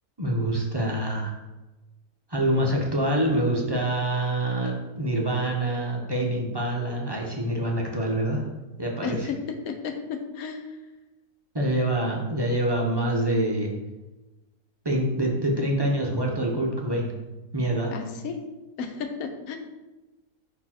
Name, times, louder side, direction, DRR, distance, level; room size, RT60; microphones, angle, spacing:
voice 1, 0.2-1.3 2.3-8.5 8.8-9.3 11.5-13.7 14.8-17.1 17.5-17.9, right 1 dB, 25° right, -2 dB, 0.5 m, -26 dB
voice 2, 9.0-9.4 9.6-10.8 17.9-18.4 18.8-19.6, left 6 dB, 70° left, 5 dB, 1.2 m, -33 dB
5.5 x 4.4 x 4.4 m, 1.1 s
omnidirectional pair, 1.6 m